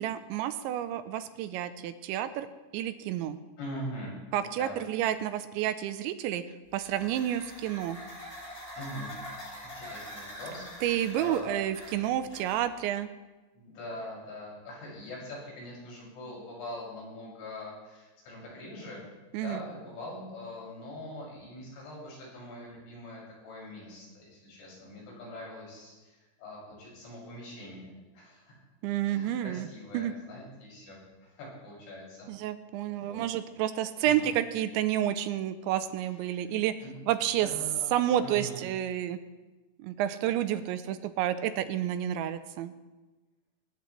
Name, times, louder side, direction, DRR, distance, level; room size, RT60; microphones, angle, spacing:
voice 1, 0.0-2.5 2.7-3.4 4.3-6.4 6.7-8.0 10.8-13.1 19.3-19.6 28.8-29.7 29.9-30.1 32.3-36.8 37.1-37.5 37.9-39.2 39.8-42.7, right 11 dB, 85° right, 10 dB, 3.1 m, -30 dB
voice 2, 3.6-4.8 5.1-5.2 8.7-9.1 9.5-11.7 13.6-19.0 19.3-28.6 29.0-32.3 32.9-33.2 34.0-34.4 36.1-37.0 37.4-38.7, left 1 dB, 85° left, -4 dB, 9.2 m, -43 dB
sound 1, 6.7-12.9, equal, 20° left, 5.6 m, -44 dB
20.0 x 20.0 x 3.3 m, 1.2 s
omnidirectional pair, 5.3 m